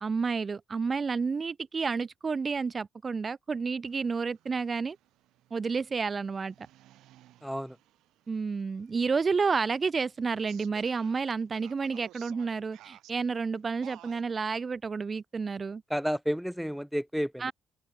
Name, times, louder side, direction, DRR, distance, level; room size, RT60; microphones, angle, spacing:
voice 1, 0.0-5.0 5.5-6.7 8.3-15.8 17.4-17.5, right 5 dB, 40° right, 1.1 m, -30 dB
sound 1, 3.9-14.6, right 15 dB, 75° right, 2.0 m, -57 dB
voice 2, 7.4-7.7 15.9-17.5, equal, ahead, 0.5 m, -31 dB
open air
hypercardioid pair, 55°, 0 cm